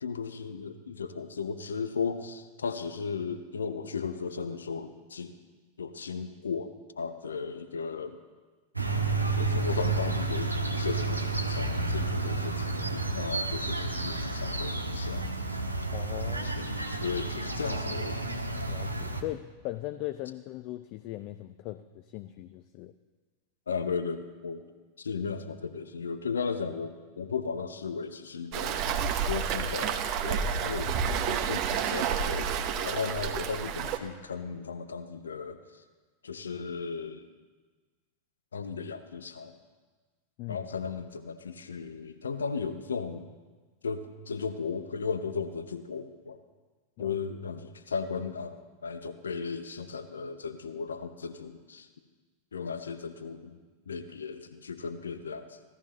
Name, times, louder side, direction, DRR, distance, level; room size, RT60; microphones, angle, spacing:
voice 1, 0.0-5.4 5.8-8.2 9.4-15.3 16.4-18.3 23.7-24.6 25.0-28.8 29.3-30.9 31.3-32.5 32.8-35.8 36.2-37.3 38.5-39.5 40.5-43.3 43.8-46.4 47.0-48.6 48.8-51.9 52.5-53.6 53.9-55.6, left 5 dB, 70° left, 9 dB, 0.8 m, -35 dB
sound 1, 8.8-19.2, right 3 dB, 85° right, 0.9 m, -31 dB
voice 2, 15.9-16.8 18.6-22.9 40.4-40.7 47.0-47.2, left 15 dB, 45° left, 11 dB, 0.4 m, -39 dB
Waves surf, 28.5-34.0, right 7 dB, 40° right, 1.0 m, -30 dB
16.5 x 13.0 x 3.1 m, 1.3 s
figure-of-eight pair, 90°, 0 cm